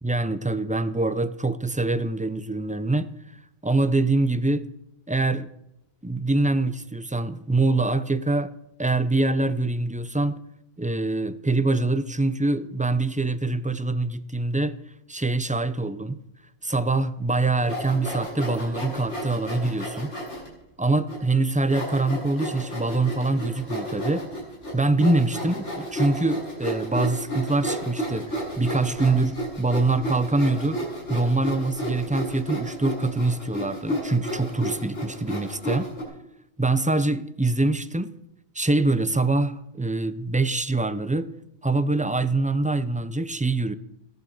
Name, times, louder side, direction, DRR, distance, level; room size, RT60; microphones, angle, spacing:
voice 1, 0.0-3.1 3.6-4.7 5.1-5.5 6.0-8.5 8.8-10.4 10.8-14.8 15.1-16.2 16.6-20.1 20.8-24.3 24.7-30.8 31.1-35.9 36.6-38.1 38.5-41.3 41.6-43.7, right 2 dB, 10° right, 0.5 m, -24 dB
Sawing, 17.6-20.5 21.1-21.2 21.7-36.0, equal, 85° left, 6.1 m, -32 dB
17.0 x 11.0 x 6.6 m
omnidirectional pair, 1.2 m